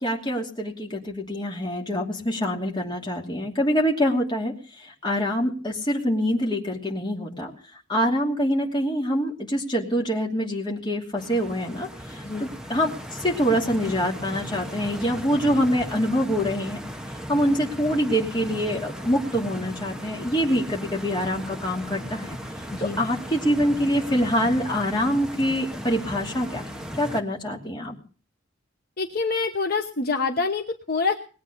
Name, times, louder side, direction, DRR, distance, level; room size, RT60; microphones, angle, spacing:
voice 1, 0.0-4.5 4.8-7.5 7.9-11.9 12.1-12.9 13.2-16.8 17.3-22.4 22.8-28.0, equal, 25° left, -1 dB, 2.7 m, -25 dB
Stream, 11.2-27.2, equal, 5° right, 1.2 m, -37 dB
voice 2, 29.0-31.1, left 4 dB, 50° left, 4 dB, 1.1 m, -26 dB
20.0 x 8.8 x 6.7 m, 0.40 s
head